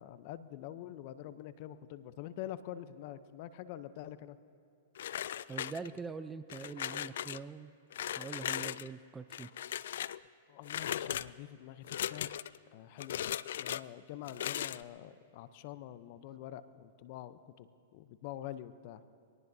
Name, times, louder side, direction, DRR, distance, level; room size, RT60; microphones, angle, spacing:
voice 1, 0.0-4.4 10.5-12.3 12.7-19.0, left 12 dB, 50° left, 13 dB, 0.7 m, -46 dB
sound 1, 5.0-6.1 6.5-7.4 7.9-8.9 9.3-10.2 10.6-11.3 11.8-12.6 13.0-13.8 14.2-14.8, left 11 dB, 70° left, 0.3 m, -38 dB
voice 2, 5.5-7.7 8.2-9.5, right 5 dB, 15° right, 12 dB, 0.5 m, -43 dB
24.0 x 19.0 x 2.8 m, 2.5 s
hypercardioid pair, 125°, 0 cm